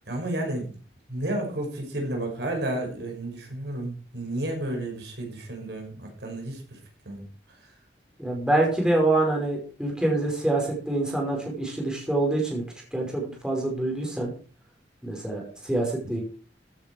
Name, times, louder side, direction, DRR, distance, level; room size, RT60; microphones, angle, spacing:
voice 1, 0.1-0.7 1.1-6.8 7.0-7.3, right 1 dB, 70° right, 1 dB, 5.8 m, -32 dB
voice 2, 8.2-12.6 12.9-14.3 15.0-16.2, right 2 dB, 5° right, -1 dB, 5.4 m, -26 dB
15.0 x 10.0 x 4.7 m, 0.39 s
head